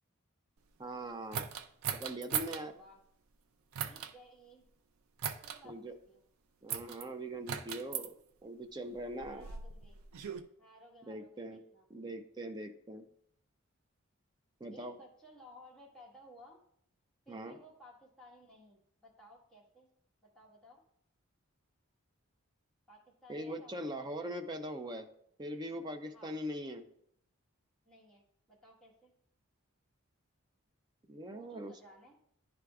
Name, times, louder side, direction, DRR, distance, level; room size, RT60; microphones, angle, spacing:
voice 1, 0.8-1.5 1.9-2.7 5.6-6.0 6.6-8.2 8.4-9.5 11.1-11.6 11.9-13.1 14.6-15.0 17.3-17.6 23.3-25.1 25.4-26.8 31.1-31.7, right 1 dB, 20° right, 6 dB, 0.4 m, -41 dB
sound 1, 1.3-2.6 3.7-4.1 5.2-5.6 6.7-7.0 7.5-8.1 9.0-10.4, right 8 dB, 80° right, 0.4 m, -38 dB
voice 2, 2.4-3.0 3.8-4.7 5.2-6.2 9.3-10.0 10.6-11.9 14.7-16.6 17.2-19.9 20.2-20.8 22.9-23.9 26.1-26.3 27.8-29.1 31.2-32.2, equal, 5° left, -6 dB, 1.3 m, -58 dB
10.5 x 4.8 x 2.3 m, 0.69 s
head